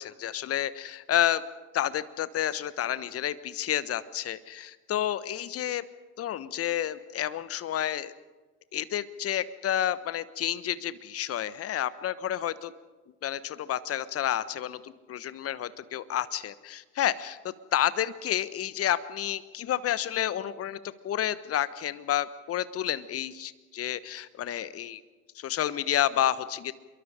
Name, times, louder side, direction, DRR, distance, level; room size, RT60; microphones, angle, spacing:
voice 1, 0.0-1.4 1.7-5.8 6.2-8.1 8.7-12.7 13.2-17.4 17.7-20.8 21.0-25.0 25.3-26.7, left 11 dB, 30° left, 15 dB, 1.2 m, -30 dB
27.0 x 23.0 x 5.0 m, 1.2 s
hypercardioid pair, 80°, 45 cm